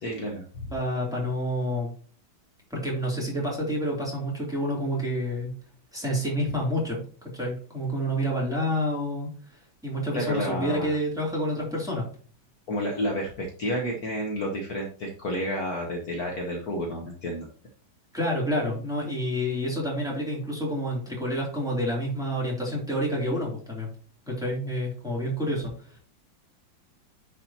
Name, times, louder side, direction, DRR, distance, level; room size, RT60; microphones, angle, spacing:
voice 1, 0.0-0.7 10.1-10.9 12.7-17.5, equal, 55° left, 0 dB, 1.5 m, -30 dB
voice 2, 0.7-1.9 2.7-5.5 5.9-7.0 7.3-9.3 9.8-12.0 18.1-23.9 24.3-25.7, equal, ahead, -4 dB, 2.8 m, -28 dB
10.0 x 5.0 x 2.9 m, 0.44 s
omnidirectional pair, 2.1 m